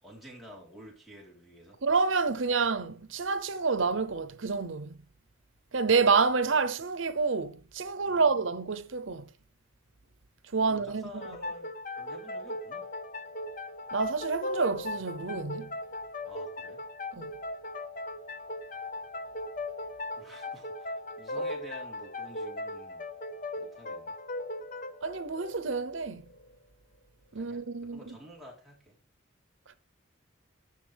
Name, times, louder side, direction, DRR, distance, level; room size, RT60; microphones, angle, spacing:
voice 1, 0.0-1.8 8.1-8.3 10.6-12.9 16.3-16.8 20.2-23.0 23.6-24.2 27.3-28.9, equal, ahead, 4.2 m, -50 dB
voice 2, 1.8-5.0 5.7-9.3 10.5-11.1 13.9-15.7 17.1-17.3 21.4-21.5 25.0-26.3 27.3-28.2, right 4 dB, 80° right, 0.9 m, -28 dB
sound 1, 11.2-26.6, left 2 dB, 40° left, 0.9 m, -38 dB
15.0 x 6.3 x 3.5 m
head